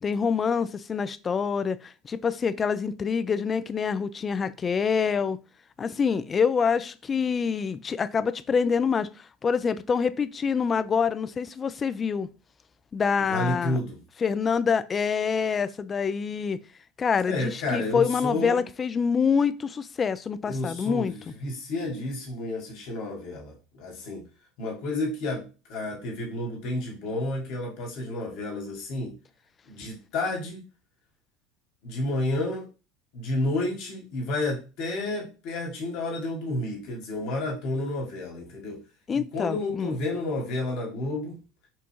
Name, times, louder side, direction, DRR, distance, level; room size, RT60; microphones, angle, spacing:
voice 1, 0.0-5.4 5.8-12.3 12.9-13.8 14.2-16.6 17.0-21.2 39.1-40.0, left 6 dB, 30° left, 0.4 m, -26 dB
voice 2, 13.3-14.0 17.3-18.6 20.5-24.2 24.6-25.4 25.7-29.1 29.7-30.6 31.8-32.7 33.1-38.8 39.1-41.4, left 2 dB, 60° left, 1.2 m, -31 dB
6.0 x 2.3 x 3.1 m
hypercardioid pair, 75°, 0 cm